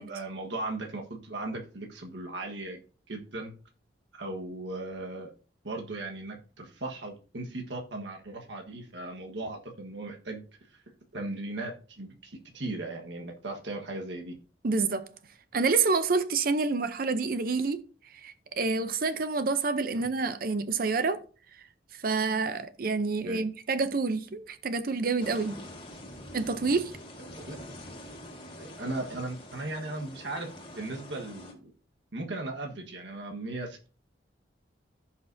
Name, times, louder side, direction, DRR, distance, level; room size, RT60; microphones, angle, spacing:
voice 1, 0.0-2.8 3.1-3.6 4.1-5.3 5.6-10.4 11.1-14.4 19.9-20.0 23.2-23.4 27.4-27.6 28.6-31.7 32.1-33.9, right 2 dB, 80° right, 1.4 m, -37 dB
voice 2, 14.6-15.1 15.5-17.8 18.1-21.2 21.9-25.6 26.3-26.9, right 4 dB, 50° right, 0.6 m, -28 dB
sound 1, 25.2-31.5, left 1 dB, 30° left, 1.8 m, -45 dB
15.0 x 5.7 x 2.7 m
head